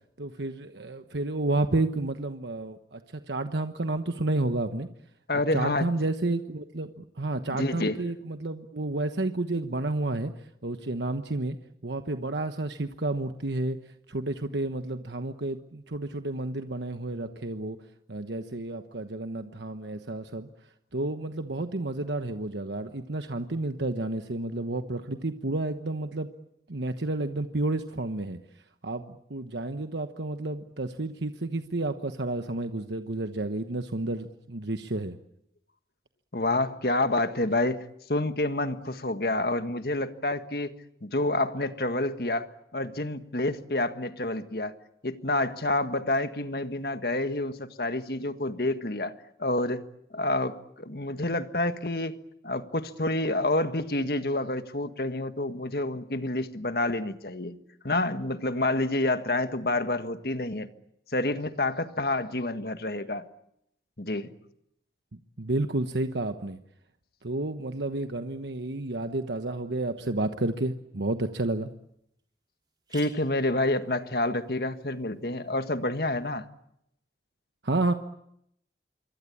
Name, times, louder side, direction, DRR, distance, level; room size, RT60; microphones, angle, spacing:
voice 1, 0.2-3.0 3.3-4.9 5.5-11.6 11.8-13.8 14.1-17.8 18.1-20.5 20.9-26.3 26.7-28.4 28.8-35.2 65.4-66.6 67.2-71.7 77.6-77.9, right 2 dB, 85° right, 8 dB, 1.2 m, -31 dB
voice 2, 5.3-5.9 7.5-8.0 36.3-37.8 38.1-40.7 41.0-42.5 42.7-44.7 45.0-49.1 49.4-49.9 50.1-52.2 52.4-57.6 57.8-60.7 61.1-63.3 64.0-64.3 72.9-76.5, left 2 dB, 60° left, 9 dB, 1.7 m, -28 dB
sound 1, 71.3-71.4 71.9-72.0 72.2-72.3 72.6-76.4, right 4 dB, 25° right, 5.1 m, -54 dB
26.5 x 24.0 x 8.6 m, 0.76 s
head